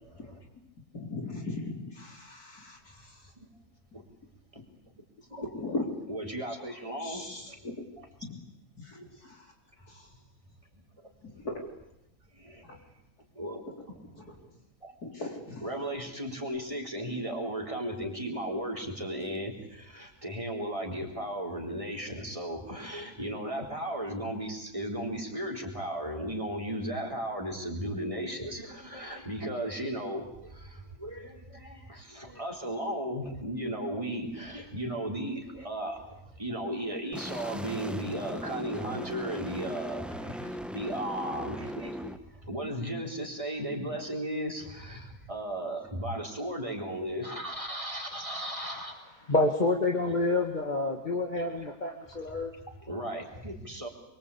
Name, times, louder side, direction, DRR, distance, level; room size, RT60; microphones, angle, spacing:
voice 1, 0.0-0.4 3.4-3.5 3.9-4.0 4.5-5.0 5.3-5.5 6.1-7.6 10.7-11.4 12.3-12.9 13.3-13.6 14.8-14.9 15.6-48.9 52.5-53.9, right 1 dB, 20° right, 2 dB, 4.1 m, -36 dB
voice 2, 0.9-3.1 5.5-5.8 7.0-7.8 8.8-9.4 9.9-10.0 11.4-11.7 15.0-15.6, left 2 dB, 75° left, 1 dB, 4.6 m, -38 dB
sound 1, 37.1-42.2, equal, ahead, 0.7 m, -38 dB
voice 3, 49.3-52.5, left 2 dB, 30° left, 3 dB, 2.0 m, -28 dB
25.0 x 23.5 x 8.7 m, 0.83 s
omnidirectional pair, 1.6 m